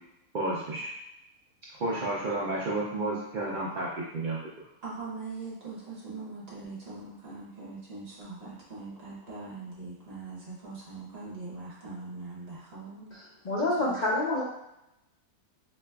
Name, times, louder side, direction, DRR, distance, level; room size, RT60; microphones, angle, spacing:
voice 1, 0.3-0.9 1.8-4.4, right 2 dB, 75° right, -5 dB, 0.4 m, -31 dB
voice 2, 4.8-13.1 13.8-13.9, right 3 dB, 45° right, -6 dB, 1.2 m, -41 dB
voice 3, 13.1-14.4, left 2 dB, 80° left, -5 dB, 0.4 m, -28 dB
4.0 x 3.1 x 2.2 m, 0.85 s
omnidirectional pair, 1.6 m